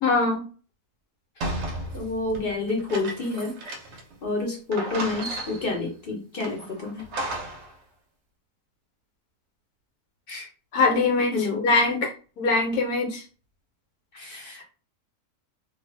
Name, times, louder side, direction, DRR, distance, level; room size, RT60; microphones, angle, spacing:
voice 1, 0.0-0.4 10.7-13.2, left 3 dB, 75° left, 1 dB, 1.3 m, -23 dB
sound 1, 1.4-4.1 4.4-4.5 4.7-5.8 6.4-7.7, right 1 dB, 60° right, 0.8 m, -34 dB
voice 2, 1.9-3.6 4.2-7.0 10.3-10.5 11.3-11.6 14.1-14.6, left 3 dB, 45° left, 0 dB, 1.0 m, -29 dB
2.5 x 2.5 x 3.2 m, 0.36 s
omnidirectional pair, 1.6 m